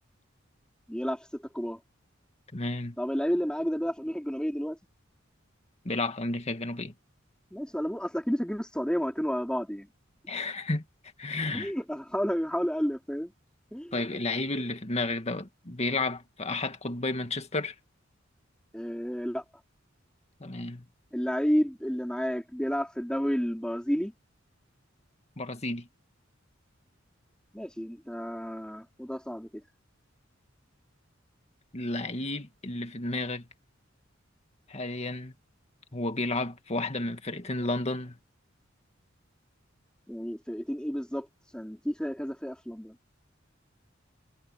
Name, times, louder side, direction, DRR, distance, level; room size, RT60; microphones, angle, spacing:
voice 1, 0.9-1.8 3.0-4.8 7.5-9.9 11.5-13.3 13.7-13.9 18.7-19.4 21.1-24.1 27.5-29.5 40.1-41.3 41.5-42.9, equal, 5° left, 3.2 m, -31 dB
voice 2, 2.5-3.0 5.9-6.9 10.3-10.8 11.2-11.7 13.9-17.7 20.4-20.9 25.4-25.9 31.7-33.5 34.7-35.3 35.9-38.2, left 2 dB, 35° left, 1.9 m, -32 dB
head